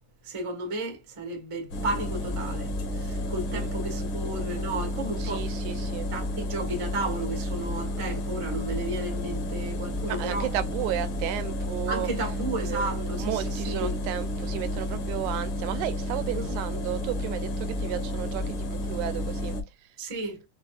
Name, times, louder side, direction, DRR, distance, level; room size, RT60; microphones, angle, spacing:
voice 1, 0.2-5.5 6.1-10.5 11.9-13.9 16.3-16.6 20.0-20.4, right 2 dB, 40° right, 0.4 m, -33 dB
sound 1, 1.7-19.6, left 1 dB, 60° left, 1.6 m, -31 dB
voice 2, 5.2-6.1 10.1-12.1 12.6-19.6, right 13 dB, 85° right, 2.1 m, -33 dB
5.7 x 2.4 x 2.3 m
omnidirectional pair, 3.4 m